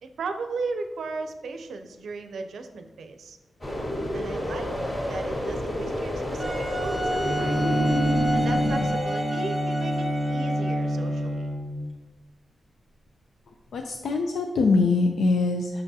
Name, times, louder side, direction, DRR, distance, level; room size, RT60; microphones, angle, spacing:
voice 1, 0.0-3.4 4.1-4.7 5.1-7.6 8.3-11.5, right 4 dB, 80° right, 7 dB, 0.5 m, -36 dB
sound 1, 3.6-8.9, equal, 30° left, 1.8 m, -30 dB
Wind instrument woodwind instrument, 6.4-10.9, equal, 5° left, 1.1 m, -31 dB
Bowed string instrument, 7.2-11.9, equal, 35° right, 0.7 m, -26 dB
voice 2, 13.7-15.8, left 3 dB, 90° left, 3 dB, 0.4 m, -23 dB
6.4 x 5.9 x 2.8 m, 1.2 s
wide cardioid pair, 150°, 0 cm